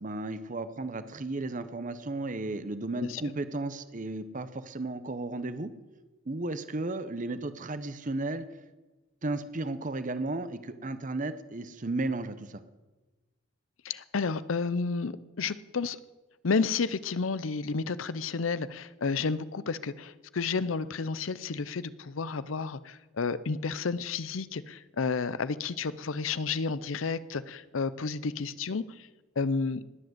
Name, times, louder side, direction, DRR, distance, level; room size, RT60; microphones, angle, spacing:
voice 1, 0.0-5.7 6.3-8.5 9.2-12.6, right 2 dB, 40° right, 12 dB, 0.8 m, -34 dB
voice 2, 13.8-16.0 16.4-28.8 29.4-29.8, left 4 dB, 80° left, 16 dB, 0.6 m, -31 dB
19.5 x 7.7 x 7.9 m, 1.2 s
head